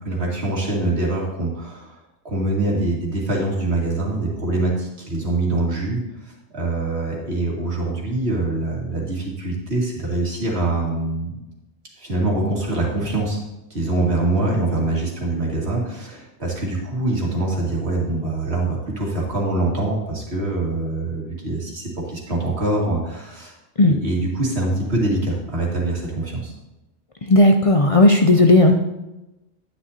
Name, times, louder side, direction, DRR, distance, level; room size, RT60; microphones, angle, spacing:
voice 1, 0.0-2.0 2.2-11.3 12.0-13.4 13.7-23.5 23.9-26.5, right 2 dB, 80° right, -2 dB, 2.4 m, -24 dB
voice 2, 27.3-28.8, left 2 dB, 45° left, 4 dB, 0.4 m, -13 dB
9.9 x 9.8 x 2.8 m, 0.98 s
omnidirectional pair, 1.1 m